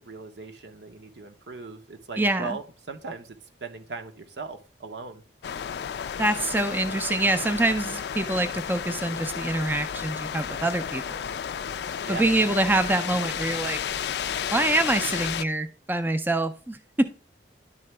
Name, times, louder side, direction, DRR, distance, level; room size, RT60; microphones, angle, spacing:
voice 1, 0.0-5.2 12.0-12.3, right 4 dB, 75° right, 6 dB, 0.9 m, -39 dB
voice 2, 2.2-2.6 6.2-11.2 12.1-13.8 14.5-17.1, right 2 dB, 10° right, 9 dB, 0.4 m, -25 dB
sound 1, 5.4-15.4, left 8 dB, 65° left, 0.3 m, -32 dB
11.0 x 3.8 x 3.3 m, 0.34 s
head